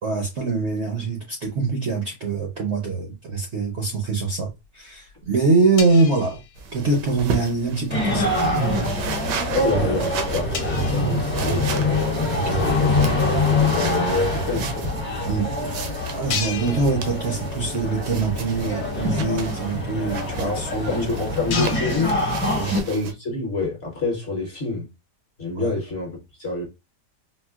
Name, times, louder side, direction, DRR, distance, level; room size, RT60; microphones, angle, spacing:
voice 1, 0.0-6.4 6.7-8.4 9.7-10.0 12.3-12.7 15.3-15.5 16.1-20.9 22.5-22.7 25.5-25.7, right 3 dB, 60° right, 0.7 m, -24 dB
sound 1, 4.6-4.7 4.9-7.2 7.5-7.8 8.3-8.6 9.1-9.2 9.6-9.7 9.9-10.0 10.5-12.2 12.8-12.9 14.0-14.1 14.3-14.4 15.0-15.1 15.5-15.6 16.2-17.7 18.0-18.2 18.7-18.8 19.0-22.8, left 6 dB, 70° left, 1.1 m, -36 dB
sound 2, 6.6-23.1, right 5 dB, 80° right, 1.3 m, -35 dB
sound 3, 7.9-22.8, left 2 dB, 10° left, 0.5 m, -24 dB
voice 2, 9.5-10.5 10.9-12.1 12.7-14.9 20.4-22.2 22.7-24.9 25.4-26.7, left 3 dB, 45° left, 0.9 m, -27 dB
4.1 x 2.1 x 2.3 m
omnidirectional pair, 1.9 m